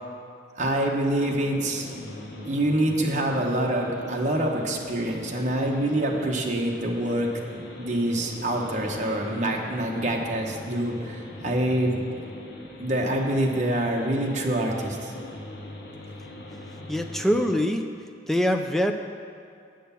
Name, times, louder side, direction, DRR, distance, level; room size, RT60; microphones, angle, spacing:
voice 1, 0.5-1.9 2.5-7.3 7.8-11.9 12.8-15.1, right 1 dB, 40° right, 0 dB, 1.0 m, -26 dB
sound 1, 1.2-17.5, left 1 dB, 60° left, 1.0 m, -40 dB
voice 2, 16.9-17.9 18.3-18.9, equal, ahead, 5 dB, 0.4 m, -23 dB
7.9 x 6.5 x 7.0 m, 2.4 s
head